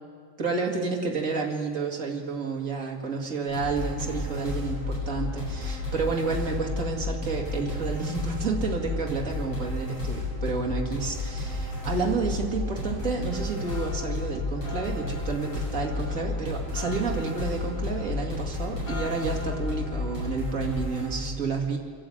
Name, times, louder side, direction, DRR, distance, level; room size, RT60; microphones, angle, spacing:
voice 1, 0.4-21.8, right 4 dB, 40° right, 0 dB, 2.5 m, -30 dB
sound 1, 3.5-21.1, left 2 dB, 80° left, 9.1 m, -32 dB
sound 2, 13.3-20.6, left 3 dB, 50° left, 1.4 m, -43 dB
26.0 x 11.5 x 8.7 m, 2.1 s
omnidirectional pair, 2.2 m